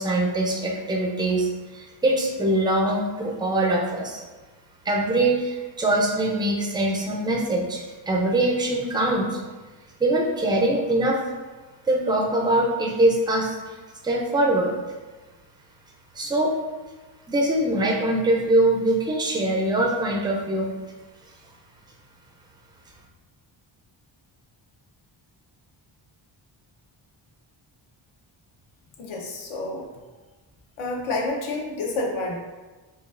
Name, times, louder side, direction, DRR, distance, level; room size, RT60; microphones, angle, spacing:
voice 1, 0.0-4.2 4.9-9.4 10.0-11.2 11.9-13.7 14.0-14.7 16.2-16.5 17.3-20.7, right 1 dB, 10° right, -1 dB, 0.4 m, -23 dB
voice 2, 29.0-29.9 30.8-32.4, left 2 dB, 80° left, 0 dB, 0.9 m, -29 dB
5.1 x 2.3 x 2.4 m, 1.2 s
wide cardioid pair, 170°, 48 cm